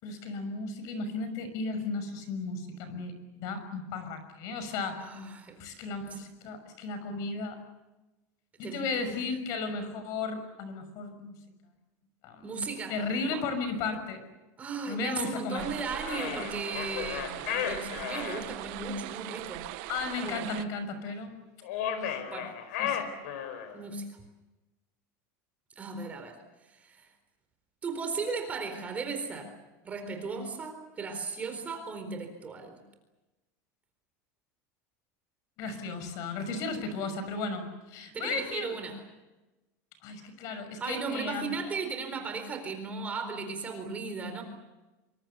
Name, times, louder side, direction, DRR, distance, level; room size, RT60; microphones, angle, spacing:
voice 1, 0.0-5.0 5.6-7.6 8.6-11.3 12.2-12.5 12.9-14.2 14.9-15.7 19.9-21.3 22.0-22.2 22.8-23.1 35.6-38.7 40.0-41.6, left 4 dB, 50° left, 9 dB, 6.1 m, -35 dB
voice 2, 5.0-5.6 8.6-9.2 12.4-13.0 13.2-13.4 14.6-19.6 20.2-20.5 22.3-22.5 23.7-24.1 25.8-26.4 26.7-27.0 27.8-29.5 29.8-32.8 38.1-39.0 40.8-44.4, right 4 dB, 20° right, 6 dB, 4.2 m, -36 dB
sound 1, 15.6-20.6, right 16 dB, 55° right, 1.2 m, -40 dB
sound 2, 16.0-18.4 21.6-23.8, left 9 dB, 90° left, 5.2 m, -34 dB
26.5 x 25.5 x 6.9 m, 1.1 s
cardioid pair, 165°, 8 cm